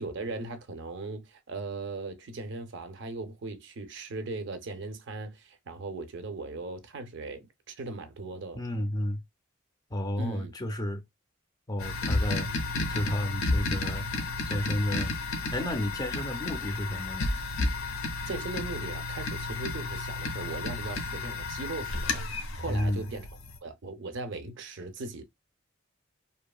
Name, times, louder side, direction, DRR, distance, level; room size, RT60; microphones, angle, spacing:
voice 1, 0.0-8.6 10.2-10.5 18.3-23.3 23.6-25.2, right 3 dB, 60° right, 0.5 m, -38 dB
voice 2, 8.6-9.2 9.9-11.0 11.7-12.5 12.9-15.1 15.5-17.3 22.7-23.1, left 1 dB, 20° left, 0.4 m, -32 dB
sound 1, 11.8-23.6, left 3 dB, 75° left, 0.5 m, -32 dB
2.7 x 2.2 x 2.3 m
head